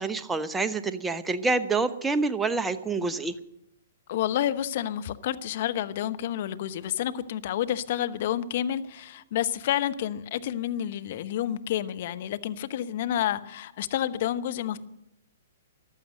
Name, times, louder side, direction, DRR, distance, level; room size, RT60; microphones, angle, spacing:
voice 1, 0.0-3.3, right 3 dB, 10° right, 9 dB, 0.9 m, -27 dB
voice 2, 4.1-14.8, left 11 dB, 55° left, 12 dB, 0.9 m, -29 dB
15.0 x 12.0 x 6.6 m, 0.81 s
hypercardioid pair, 120°, 0 cm